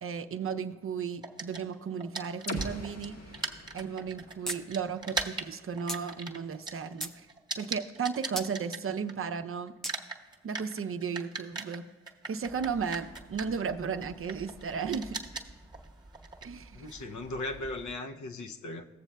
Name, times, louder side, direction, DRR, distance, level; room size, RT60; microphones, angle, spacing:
voice 1, 0.0-3.2 3.7-7.3 7.6-9.8 10.4-11.8 12.3-15.2 16.4-16.8, right 6 dB, 50° right, 0.5 m, -34 dB
sound 1, 1.2-9.4 9.7-17.9, right 3 dB, 15° right, 0.9 m, -40 dB
sound 2, 2.5-6.3, left 1 dB, 60° left, 1.0 m, -43 dB
sound 3, 4.5-4.6 4.9-5.0 5.9-6.0 6.6-7.2 8.4-8.5 9.8-10.0, equal, ahead, 0.5 m, -36 dB
voice 2, 16.7-18.9, left 2 dB, 80° left, 0.6 m, -37 dB
16.0 x 7.1 x 2.2 m
cardioid pair, 45°, 29 cm